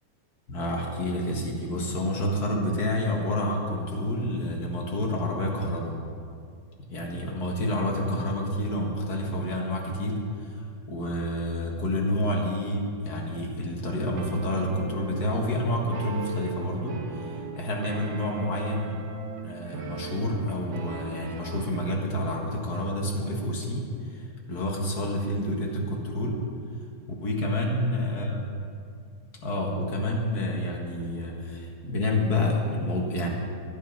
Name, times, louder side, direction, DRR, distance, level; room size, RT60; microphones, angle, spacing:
voice 1, 0.5-6.0 6.9-19.0 19.4-26.4 27.2-28.5 29.4-33.3, left 1 dB, 40° left, 0 dB, 1.7 m, -29 dB
sound 1, 14.2-21.9, right 4 dB, 65° right, 1.2 m, -39 dB
12.0 x 12.0 x 5.8 m, 2.3 s
omnidirectional pair, 3.5 m